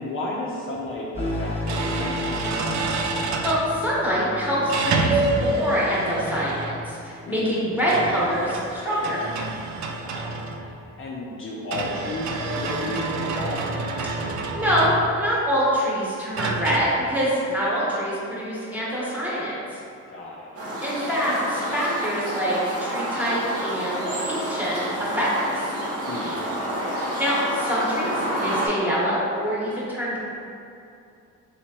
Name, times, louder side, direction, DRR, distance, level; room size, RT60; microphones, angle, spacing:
voice 1, 0.0-2.4 7.3-7.6 10.0-13.6 20.1-20.5 26.1-26.4, left 2 dB, 45° left, -4 dB, 0.5 m, -33 dB
sound 1, 0.8-0.9 1.7-3.7 4.7-6.9 7.8-10.8 11.7-15.3 16.4-16.8, right 3 dB, 70° right, 0.4 m, -28 dB
sound 2, 1.1-7.9, left 1 dB, 20° left, 1.0 m, -34 dB
voice 2, 3.0-9.2 14.0-14.3 14.5-19.8 20.8-25.7 26.9-30.2, equal, 5° right, -8 dB, 1.1 m, -25 dB
sound 3, 20.6-28.7, equal, 50° right, 0.9 m, -29 dB
3.4 x 3.0 x 2.8 m, 2.6 s
cardioid pair, 90°, 30 cm